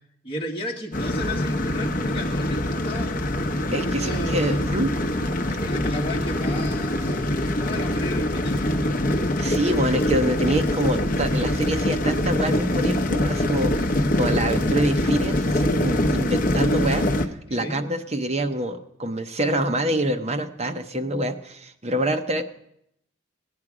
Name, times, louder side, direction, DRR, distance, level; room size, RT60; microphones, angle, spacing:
voice 1, 0.2-3.1 3.6-4.5 5.4-9.0 17.5-17.9, equal, 25° left, -1 dB, 1.6 m, -34 dB
sound 1, 0.9-17.3, left 1 dB, 40° left, 0.8 m, -24 dB
voice 2, 3.7-5.0 9.4-22.4, right 1 dB, 30° right, 6 dB, 0.8 m, -26 dB
17.5 x 9.5 x 4.9 m, 0.77 s
head